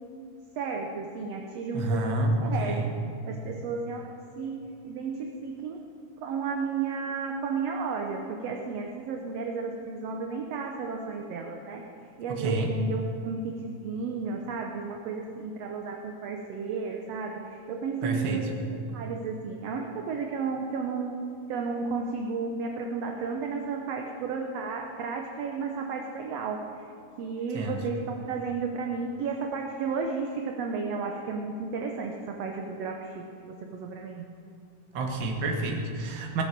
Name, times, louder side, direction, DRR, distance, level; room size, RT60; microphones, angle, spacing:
voice 1, 0.6-2.2 2.4-2.8 3.3-5.9 6.2-11.8 12.2-18.6 18.9-21.1 21.5-26.8 27.2-34.3, right 5 dB, 70° right, 2 dB, 1.6 m, -33 dB
voice 2, 1.7-2.9 12.3-12.7 18.0-18.4 27.5-27.8 34.9-36.4, right 2 dB, 50° right, 2 dB, 1.6 m, -28 dB
18.0 x 7.2 x 7.4 m, 2.6 s
omnidirectional pair, 3.8 m